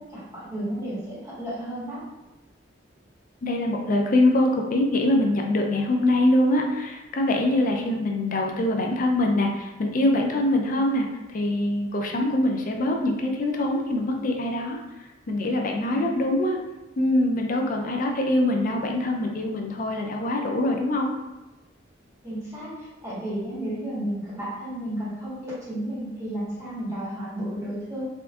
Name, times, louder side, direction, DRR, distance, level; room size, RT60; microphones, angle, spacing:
voice 1, 0.1-2.0 15.9-16.1 22.2-28.1, right 1 dB, 15° right, -10 dB, 1.4 m, -32 dB
voice 2, 3.4-11.1 11.3-14.8 15.3-16.6 17.0-21.1, left 1 dB, 45° left, 2 dB, 0.4 m, -23 dB
3.6 x 2.6 x 2.3 m, 1.1 s
head